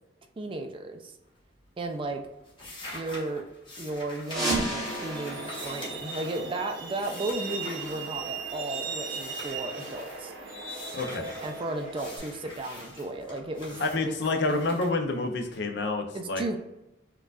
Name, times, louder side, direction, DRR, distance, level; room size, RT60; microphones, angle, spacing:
voice 1, 0.4-1.1 1.8-2.2 2.9-3.4 3.8-10.3 11.4-14.2 16.1-16.6, right 2 dB, 25° right, 5 dB, 0.3 m, -34 dB
sound 1, 1.2-1.7 1.9-8.7 9.0-10.2 10.7-15.6, left 1 dB, 25° left, 1.1 m, -45 dB
sound 2, 4.2-6.9, right 1 dB, ahead, 1.1 m, -33 dB
Truck, 4.8-12.2, right 4 dB, 80° right, 0.8 m, -38 dB
voice 2, 10.9-11.3 13.8-16.6, left 2 dB, 60° left, 5 dB, 0.5 m, -28 dB
4.6 x 2.3 x 2.4 m, 0.94 s
head